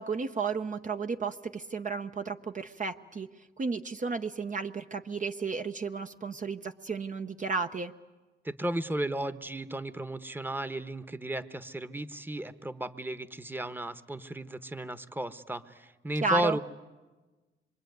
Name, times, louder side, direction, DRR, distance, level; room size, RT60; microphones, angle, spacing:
voice 1, 0.0-3.3 3.6-7.9 16.2-16.6, right 4 dB, 40° right, 6 dB, 0.8 m, -33 dB
voice 2, 8.4-16.6, right 1 dB, 10° right, 12 dB, 1.1 m, -34 dB
26.0 x 23.5 x 9.4 m, 1.2 s
cardioid pair, 85°, 20 cm